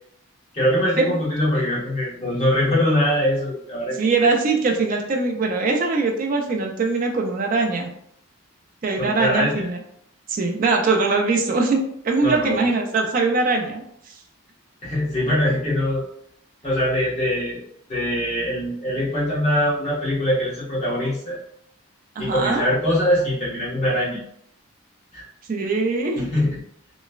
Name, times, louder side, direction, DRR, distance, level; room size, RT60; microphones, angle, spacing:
voice 1, 0.5-4.0 9.0-9.7 12.2-12.7 14.8-16.0 16.6-17.6 17.9-21.4 22.2-24.2 25.1-25.3 26.2-26.6, left 1 dB, 30° left, -8 dB, 1.1 m, -22 dB
voice 2, 3.9-7.9 8.8-9.8 10.3-14.1 22.2-22.6 25.5-26.3, right 3 dB, 40° right, 2 dB, 0.3 m, -22 dB
3.0 x 2.1 x 2.3 m, 0.71 s
head